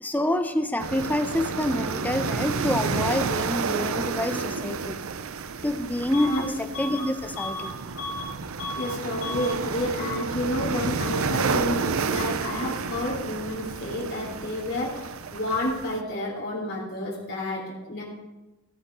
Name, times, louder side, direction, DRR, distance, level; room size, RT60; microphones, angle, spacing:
voice 1, 0.0-5.0 5.6-7.8, left 1 dB, 10° left, 8 dB, 0.7 m, -27 dB
sound 1, 0.8-16.0, right 5 dB, 85° right, 0.7 m, -30 dB
Bus / Alarm, 6.1-6.4 6.7-8.3 8.6-8.9 9.2-9.5, left 2 dB, 85° left, 3.2 m, -34 dB
voice 2, 6.2-6.5 8.7-18.0, left 1 dB, 50° left, -5 dB, 3.4 m, -30 dB
16.0 x 8.1 x 5.4 m, 1.1 s
head